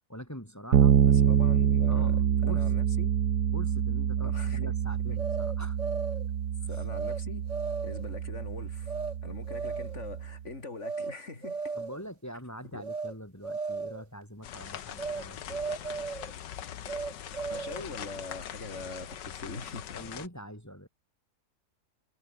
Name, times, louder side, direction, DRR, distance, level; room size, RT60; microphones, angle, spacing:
voice 1, 0.1-1.0 1.9-2.7 3.5-5.8 6.7-6.8 11.7-15.6 19.9-20.9, equal, 10° left, 7.3 m, -44 dB
Bass guitar, 0.7-10.4, right 9 dB, 70° right, 1.7 m, -27 dB
voice 2, 1.0-2.2 2.4-3.1 4.2-4.7 6.7-7.4 7.8-8.9 9.2-11.7 12.7-12.8 17.5-20.0, left 3 dB, 40° left, 4.3 m, -42 dB
sound 1, 5.2-6.3 6.9-7.2 7.5-8.1 8.9-9.1 9.5-10.0 10.8-11.1 11.4-12.1 12.8-13.1 13.4-14.0 15.0-15.2 15.5-16.3 16.9-17.9, right 4 dB, 45° right, 2.5 m, -35 dB
sound 2, 14.4-20.3, left 10 dB, 90° left, 1.8 m, -42 dB
omnidirectional pair, 1.8 m